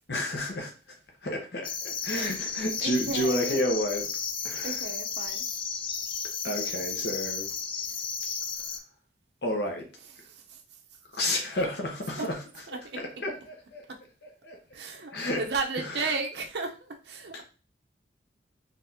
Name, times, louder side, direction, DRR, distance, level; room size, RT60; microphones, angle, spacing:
voice 1, 0.1-0.7 1.2-4.1 4.4-4.8 6.4-7.5 9.4-9.9 11.1-12.4 12.9-13.8 14.4-14.6 15.1-15.4 15.8-16.1 17.3-17.4, left 1 dB, 65° left, 0.8 m, -31 dB
sound 1, 1.6-8.8, left 6 dB, 30° left, 0.4 m, -33 dB
voice 2, 2.8-3.6 4.6-5.5 10.2-10.6 12.2-12.3 12.7-13.0 13.9-14.0 14.7-17.4, right 4 dB, 70° right, 0.7 m, -34 dB
4.0 x 3.3 x 2.7 m
head